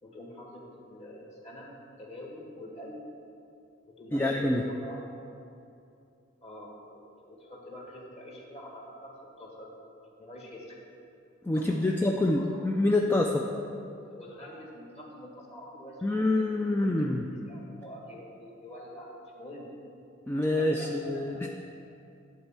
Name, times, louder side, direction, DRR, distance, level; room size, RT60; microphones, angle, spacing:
voice 1, 0.0-3.0 3.9-5.0 6.4-9.8 10.1-10.8 11.5-12.7 14.0-17.1 17.5-19.7 20.6-21.5, equal, 30° left, -2 dB, 1.7 m, -46 dB
voice 2, 4.1-4.6 11.4-13.5 16.0-17.3 20.3-21.5, left 2 dB, 10° left, 1 dB, 0.4 m, -26 dB
11.0 x 4.4 x 7.4 m, 2.6 s
head